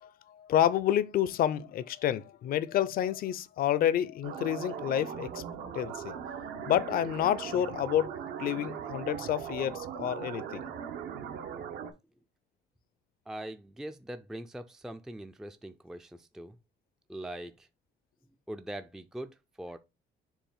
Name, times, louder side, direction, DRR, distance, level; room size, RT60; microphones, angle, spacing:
voice 1, 0.0-5.4 5.7-6.2 6.7-8.1 8.4-10.7, left 11 dB, 60° left, 0.6 m, -29 dB
sound 1, 4.2-11.9, right 8 dB, 75° right, 1.2 m, -39 dB
voice 2, 13.3-16.6 17.1-17.7 18.5-19.8, right 1 dB, 5° right, 0.4 m, -42 dB
7.1 x 2.6 x 5.5 m
cardioid pair, 110°, 17 cm